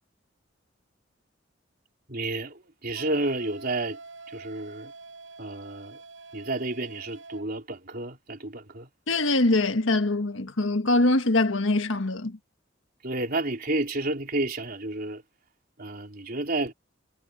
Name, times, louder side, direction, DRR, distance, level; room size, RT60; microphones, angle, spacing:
voice 1, 2.1-4.0 4.3-4.9 5.4-6.0 6.3-8.9 13.0-15.2 15.8-16.7, right 2 dB, 50° right, 3.7 m, -31 dB
Wind instrument woodwind instrument, 2.9-7.5, right 3 dB, 80° right, 7.4 m, -46 dB
voice 2, 9.1-12.4, left 2 dB, 85° left, 1.5 m, -23 dB
head